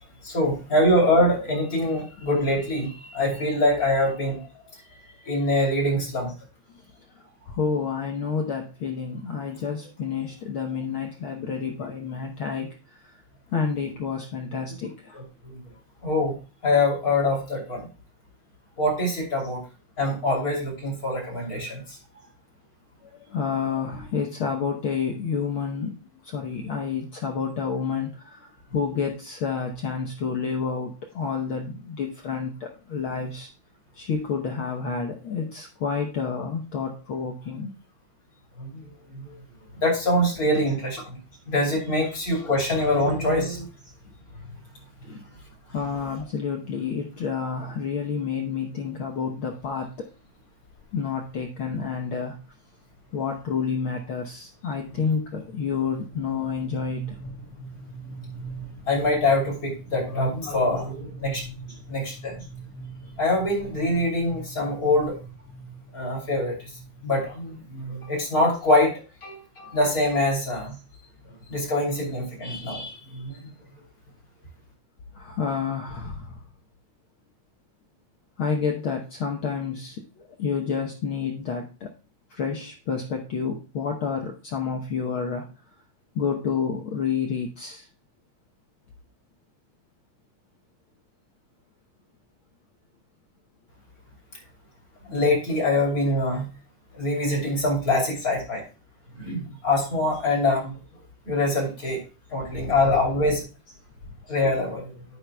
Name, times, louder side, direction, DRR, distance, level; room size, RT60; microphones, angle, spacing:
voice 1, 0.2-4.5 5.2-6.3 15.1-15.6 16.0-16.3 16.6-17.9 18.8-19.6 20.0-22.0 38.6-38.9 39.1-39.3 39.8-41.2 41.5-43.7 58.9-61.6 61.9-62.4 63.2-65.2 65.9-66.7 67.0-70.7 71.5-73.5 95.0-96.5 96.9-98.6 99.2-100.8 101.2-102.0 102.3-103.4 104.3-105.0, left 1 dB, 30° left, -2 dB, 3.1 m, -24 dB
voice 2, 7.5-12.7 13.0-13.1 13.5-15.2 23.0-26.0 26.2-33.5 34.0-37.7 40.5-40.7 41.7-42.1 45.0-45.2 45.7-50.1 50.9-52.4 53.1-57.0 61.7-61.8 73.1-73.2 75.1-76.4 78.4-81.9 82.3-85.4 86.1-87.8 102.6-103.0, left 6 dB, 85° left, 2 dB, 1.1 m, -29 dB
sound 1, 49.6-49.9 50.7-50.9 51.3-51.4 51.7-52.0 52.4-68.7, right 3 dB, 65° left, 3.8 m, -43 dB
10.0 x 9.2 x 2.3 m, 0.32 s
omnidirectional pair, 3.6 m